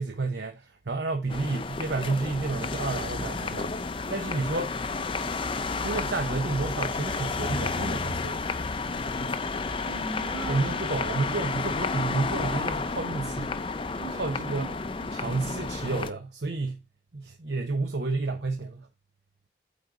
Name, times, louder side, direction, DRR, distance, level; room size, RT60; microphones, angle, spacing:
voice 1, 0.0-3.7 4.1-4.7 5.8-8.5 9.2-9.5 10.5-13.6 13.8-14.7 15.1-16.8 17.1-18.9, right 3 dB, 65° right, 0.9 m, -31 dB
sound 1, 1.3-16.1, left 4 dB, 30° left, 0.5 m, -31 dB
voice 2, 9.8-10.7 13.9-15.3, right 2 dB, 50° right, 3.3 m, -39 dB
8.6 x 3.9 x 4.9 m
head